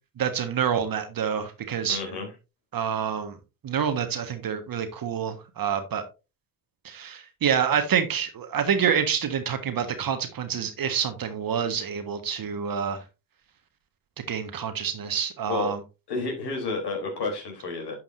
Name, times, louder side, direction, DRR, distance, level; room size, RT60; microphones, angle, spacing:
voice 1, 0.2-2.0 2.7-3.4 3.6-6.0 6.8-13.0 14.3-15.8, right 7 dB, 50° right, 8 dB, 1.5 m, -27 dB
voice 2, 1.9-2.3 15.5-15.8 16.1-18.0, left 3 dB, 55° left, 2 dB, 3.6 m, -30 dB
11.0 x 5.8 x 2.6 m, 0.28 s
hypercardioid pair, 55°, 46 cm